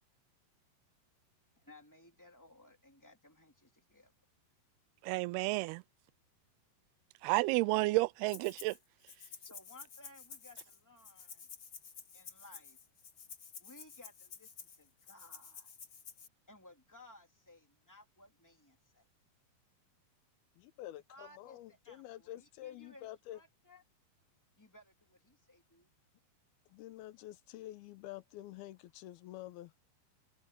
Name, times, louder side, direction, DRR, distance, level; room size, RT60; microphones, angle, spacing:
voice 1, 1.6-4.1 9.4-11.5 12.1-12.8 13.6-15.7 16.5-19.1 21.1-23.8 24.6-25.9, left 1 dB, 5° left, 1.8 m, -59 dB
voice 2, 5.0-5.8 7.2-8.8, right 22 dB, 85° right, 2.4 m, -31 dB
Rattle (instrument), 8.3-8.8 9.1-16.3, left 6 dB, 40° left, 2.0 m, -51 dB
voice 3, 20.6-23.4 26.7-29.7, left 14 dB, 75° left, 2.7 m, -48 dB
omnidirectional pair, 4.6 m